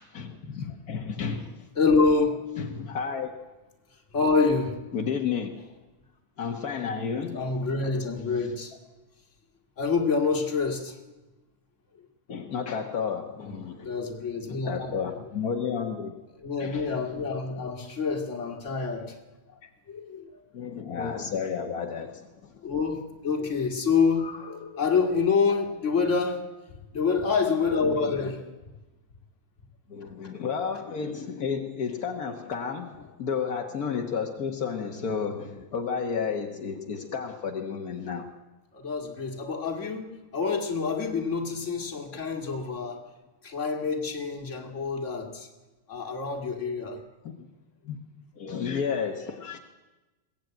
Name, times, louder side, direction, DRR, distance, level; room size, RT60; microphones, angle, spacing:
voice 1, 0.0-1.7 2.6-3.3 4.9-5.5 6.4-7.4 7.8-8.0 12.3-13.8 14.5-16.1 16.6-16.9 19.6-19.7 20.5-22.5 27.8-28.3 29.9-38.3 47.2-47.5 47.8-48.0 48.4-49.6, left 6 dB, 55° left, 3 dB, 1.0 m, -32 dB
voice 2, 1.8-2.4 4.1-4.8 7.3-8.7 9.8-11.0 13.4-14.9 16.4-19.2 19.9-20.3 22.6-26.5 26.9-28.4 38.7-43.1 43.4-45.5 45.9-47.0, left 4 dB, 25° left, 3 dB, 2.0 m, -27 dB
22.0 x 16.5 x 9.1 m, 1.1 s
omnidirectional pair, 3.4 m